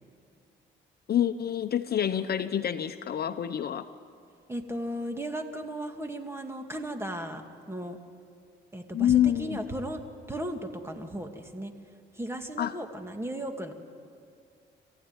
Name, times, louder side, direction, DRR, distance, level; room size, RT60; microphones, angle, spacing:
voice 1, 1.1-3.9 8.9-9.6 12.6-12.7, left 10 dB, 50° left, 10 dB, 0.9 m, -27 dB
voice 2, 4.5-7.4 7.7-8.0 8.7-10.0 10.3-11.7 12.1-13.7, right 1 dB, 10° right, 5 dB, 2.2 m, -35 dB
27.0 x 15.5 x 9.8 m, 2.4 s
cardioid pair, 90°, 20 cm